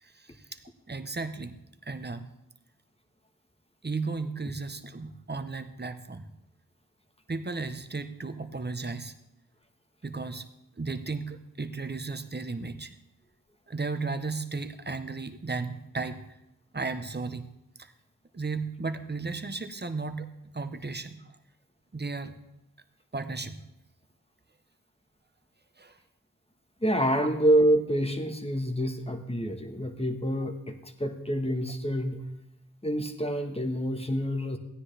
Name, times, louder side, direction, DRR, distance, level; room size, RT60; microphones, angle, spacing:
voice 1, 0.0-2.3 3.8-6.3 7.3-9.1 10.0-10.5 10.8-12.9 13.7-16.4 16.7-17.5 17.8-17.9 18.3-20.3 20.5-21.3 21.9-22.3 23.1-23.6 25.8-26.0, right 3 dB, 30° right, 9 dB, 0.9 m, -35 dB
voice 2, 26.8-32.2 32.8-34.6, right 1 dB, 15° left, 5 dB, 1.4 m, -27 dB
15.5 x 9.8 x 3.4 m, 0.91 s
cardioid pair, 40°, 34 cm